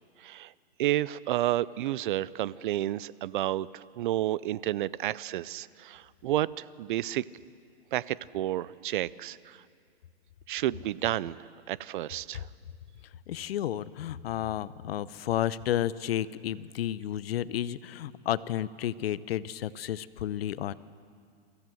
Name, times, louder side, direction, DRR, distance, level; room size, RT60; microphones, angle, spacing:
voice 1, 0.8-7.2 7.9-9.4 10.5-12.5, right 14 dB, 50° right, 20 dB, 0.5 m, -31 dB
voice 2, 13.3-20.7, left 11 dB, 65° left, 17 dB, 0.8 m, -32 dB
24.0 x 15.0 x 7.7 m, 2.2 s
hypercardioid pair, 155°, 32 cm